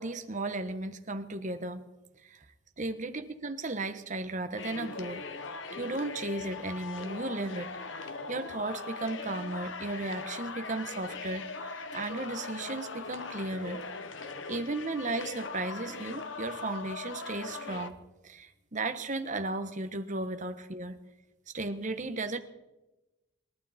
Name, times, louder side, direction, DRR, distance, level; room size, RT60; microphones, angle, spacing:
voice 1, 0.0-1.8 2.2-2.4 2.8-5.3 5.7-7.8 8.3-13.8 14.5-18.0 18.2-21.0 21.5-22.4, right 2 dB, 40° right, 8 dB, 1.2 m, -35 dB
sound 1, 4.6-17.9, left 4 dB, 65° left, 1.3 m, -40 dB
27.5 x 12.0 x 4.3 m, 1.0 s
head